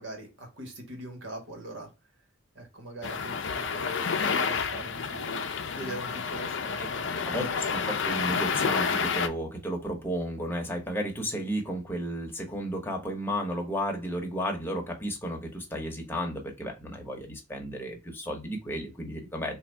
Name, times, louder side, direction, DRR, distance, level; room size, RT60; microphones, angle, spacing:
voice 1, 0.0-1.9 2.5-5.5 5.7-7.7, right 1 dB, 80° right, 2 dB, 1.5 m, -42 dB
sound 1, 3.0-9.3, left 5 dB, 70° left, 0.5 m, -29 dB
voice 2, 7.2-19.6, equal, 10° left, 1 dB, 0.9 m, -33 dB
3.8 x 2.6 x 3.3 m, 0.25 s
head